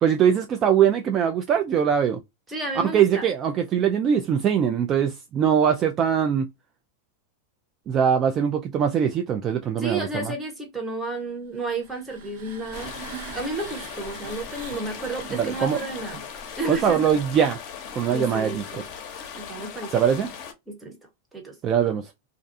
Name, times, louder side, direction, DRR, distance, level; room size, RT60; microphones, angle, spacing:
voice 1, 0.0-2.2 2.9-6.5 7.9-10.3 15.3-15.8 16.7-17.6 18.0-18.8 19.9-20.3 21.6-22.1, right 8 dB, 35° right, 0.3 m, -22 dB
voice 2, 2.5-3.3 9.8-13.0 13.3-16.2 16.6-17.0 18.1-18.8 19.3-19.9 20.7-21.0 21.3-21.6, right 2 dB, 10° right, 1.0 m, -32 dB
sound 1, 11.5-17.4, right 6 dB, 60° right, 0.8 m, -43 dB
sound 2, 12.7-20.5, left 7 dB, 50° left, 0.7 m, -38 dB
2.4 x 2.3 x 2.5 m
hypercardioid pair, 110°, 0 cm